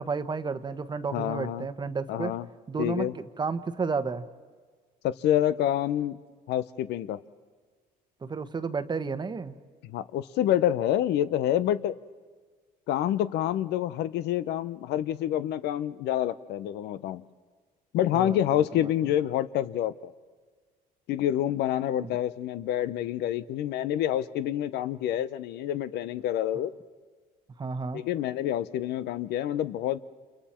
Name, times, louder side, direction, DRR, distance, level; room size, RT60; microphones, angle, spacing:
voice 1, 0.0-2.3 2.7-4.2 8.2-9.5 18.1-18.9 22.0-22.1 27.6-28.0, right 4 dB, 25° right, 11 dB, 1.0 m, -32 dB
voice 2, 1.1-1.7 2.1-2.5 2.8-3.1 5.0-6.2 6.5-7.2 9.8-12.0 12.9-17.2 17.9-20.1 21.1-26.7 27.9-30.0, left 11 dB, 80° left, 14 dB, 0.7 m, -27 dB
30.0 x 28.0 x 4.4 m, 1.5 s
cardioid pair, 110°, 17 cm